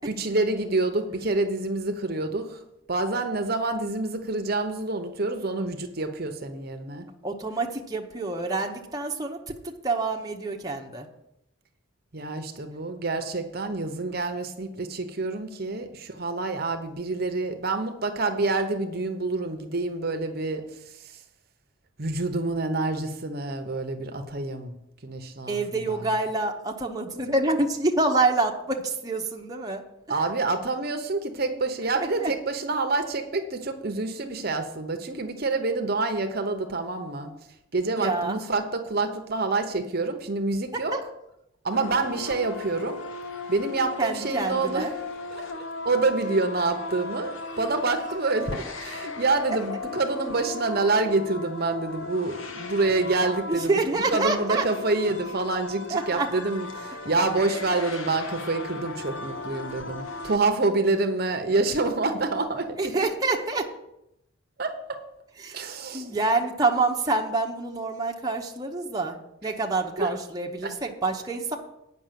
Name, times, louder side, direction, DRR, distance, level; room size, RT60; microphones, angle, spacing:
voice 1, 0.0-2.6 2.9-7.1 12.1-20.6 21.0-21.2 22.0-24.8 25.0-26.1 30.1-37.3 37.7-41.0 41.6-43.0 43.5-44.9 45.3-53.8 54.1-63.0 64.6-65.0 65.5-66.2 70.0-70.1 70.6-70.7, right 3 dB, 50° right, 6 dB, 0.9 m, -27 dB
voice 2, 7.2-9.5 9.8-11.1 25.5-29.8 30.1-30.2 31.9-32.3 38.0-38.4 40.9-41.0 44.0-44.9 53.5-54.6 55.9-56.3 62.8-63.7 65.4-65.6 65.9-71.6, right 3 dB, 20° right, 0 dB, 0.9 m, -27 dB
sound 1, 41.7-60.4, left 3 dB, 70° left, 1.0 m, -37 dB
9.1 x 6.0 x 7.5 m, 0.84 s
head